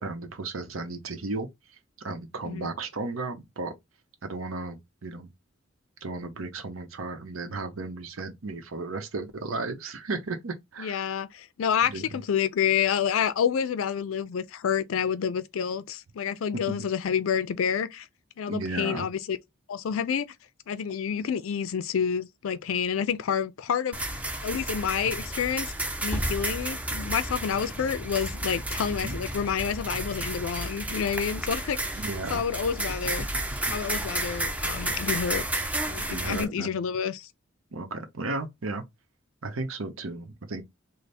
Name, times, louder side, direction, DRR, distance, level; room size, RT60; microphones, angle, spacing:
voice 1, 0.0-1.5 2.0-3.7 4.2-5.3 6.0-11.2 11.9-12.2 16.7-16.9 18.5-19.1 29.0-29.2 31.9-32.4 35.9-36.8 37.7-38.8 39.4-40.6, right 3 dB, 90° right, 0.8 m, -34 dB
voice 2, 10.8-18.1 18.4-19.4 19.7-20.3 20.7-24.2 24.4-25.7 26.0-32.0 32.3-33.3 33.7-35.4 35.9-37.3, left 7 dB, 80° left, 0.4 m, -28 dB
sound 1, 23.9-36.4, right 1 dB, 5° right, 0.5 m, -32 dB
3.3 x 2.1 x 4.1 m
head